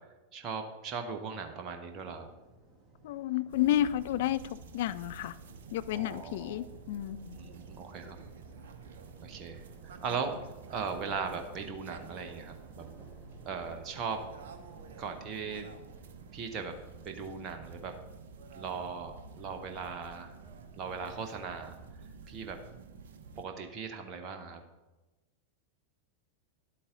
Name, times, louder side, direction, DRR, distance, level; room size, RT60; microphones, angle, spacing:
voice 1, 0.3-2.3 5.9-6.6 7.3-8.2 9.2-10.4 10.7-12.9 13.4-14.2 15.0-15.7 16.3-16.7 17.0-17.9 18.5-20.3 20.8-21.7 22.3-22.6 23.4-24.6, right 5 dB, 30° right, 5 dB, 1.0 m, -38 dB
sound 1, 1.9-17.2, right 3 dB, 10° right, 2.5 m, -58 dB
voice 2, 3.0-5.4 5.7-7.5, left 12 dB, 55° left, 14 dB, 0.4 m, -31 dB
sound 2, 3.5-23.4, right 5 dB, 60° right, 0.8 m, -50 dB
11.0 x 8.4 x 3.8 m, 1.1 s
figure-of-eight pair, 90°, 0 cm